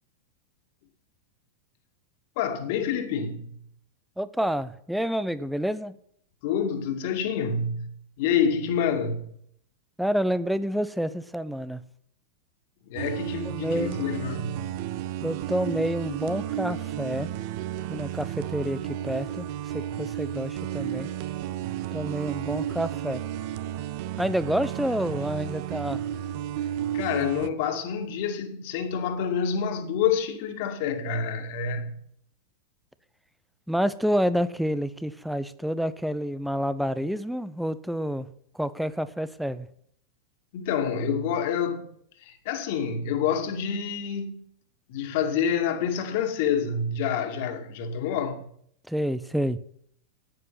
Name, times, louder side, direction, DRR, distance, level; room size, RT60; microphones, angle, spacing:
voice 1, 2.4-3.5 6.4-7.9 8.2-9.2 12.8-14.7 26.9-32.0 40.5-41.8 42.2-44.5 44.9-48.4, left 7 dB, 50° left, 2.3 m, -27 dB
voice 2, 4.2-6.0 10.0-11.8 13.3-14.0 15.2-17.3 17.9-19.5 19.7-21.1 21.9-23.2 24.2-26.0 33.7-38.3 38.5-39.7 48.9-49.6, equal, ahead, 0.8 m, -28 dB
sound 1, 13.0-27.5, right 11 dB, 45° right, 0.8 m, -33 dB
15.0 x 9.8 x 6.1 m
figure-of-eight pair, 90°, 0 cm